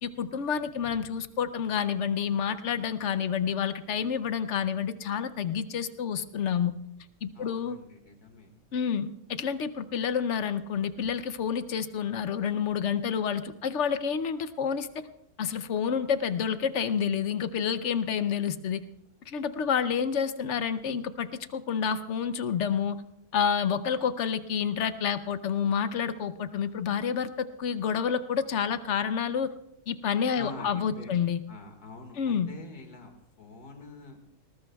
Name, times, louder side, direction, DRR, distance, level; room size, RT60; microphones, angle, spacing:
voice 1, 0.0-6.7 7.2-7.8 8.7-15.0 15.4-18.8 19.3-23.0 23.3-29.5 29.9-31.4 32.2-32.5, left 7 dB, 60° left, 12 dB, 0.9 m, -29 dB
voice 2, 7.3-8.5 30.3-31.1 31.5-33.1 33.4-34.2, left 3 dB, 85° left, 4 dB, 2.4 m, -45 dB
20.0 x 19.0 x 2.3 m, 0.80 s
omnidirectional pair, 1.6 m